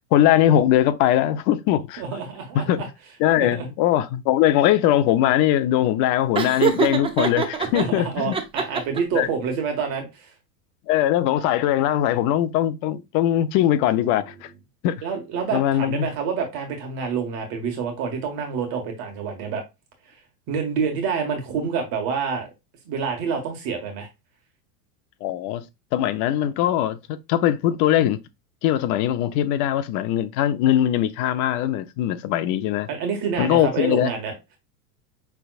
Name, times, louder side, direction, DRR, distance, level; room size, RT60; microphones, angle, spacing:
voice 1, 0.1-2.0 2.5-2.8 3.2-8.3 9.1-9.3 10.9-14.5 14.8-15.0 15.5-16.1 25.2-25.6 25.9-27.0 27.3-28.2 28.6-32.9 33.4-34.1, left 12 dB, 40° left, 0.6 m, -21 dB
voice 2, 2.0-2.9 3.4-3.7 7.7-10.3 14.0-14.2 15.0-19.6 20.5-22.5 22.8-24.1 32.9-34.3, right 6 dB, 45° right, 1.5 m, -27 dB
Laughter, 6.4-7.9 8.3-9.2, right 6 dB, 10° right, 0.4 m, -23 dB
5.8 x 3.4 x 2.3 m
supercardioid pair, 125°, 49 cm